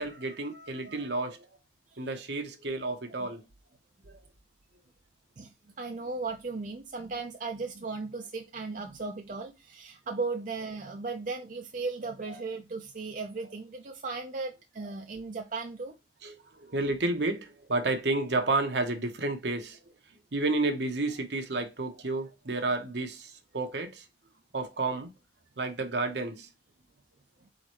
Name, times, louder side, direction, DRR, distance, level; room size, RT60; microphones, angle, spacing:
voice 1, 0.0-1.5 2.0-3.4 4.0-4.1 12.3-12.4 14.8-14.9 16.2-19.8 20.3-24.0 24.5-25.1 25.6-26.5, right 2 dB, 70° right, 1.0 m, -31 dB
voice 2, 5.4-15.9, right 3 dB, 45° right, 0.5 m, -36 dB
4.3 x 3.9 x 3.0 m
head